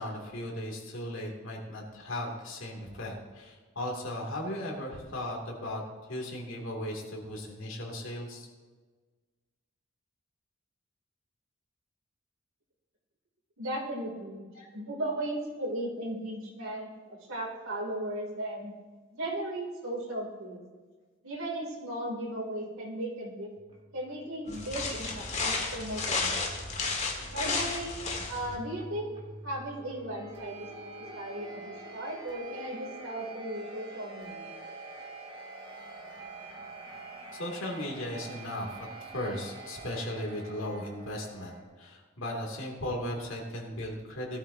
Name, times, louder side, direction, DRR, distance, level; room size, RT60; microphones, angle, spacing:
voice 1, 0.0-5.8 6.1-8.5 37.3-44.4, left 1 dB, 70° left, -1 dB, 2.7 m, -37 dB
voice 2, 13.6-18.7 19.2-20.6 21.2-23.5 23.9-26.5 27.3-27.9 28.3-29.1 29.4-34.5, right 1 dB, 90° right, -1 dB, 3.0 m, -36 dB
sound 1, 23.6-41.6, right 2 dB, 25° right, 2.7 m, -46 dB
sound 2, 24.5-28.6, left 3 dB, 35° left, 1.8 m, -32 dB
17.5 x 12.5 x 2.8 m, 1.4 s
head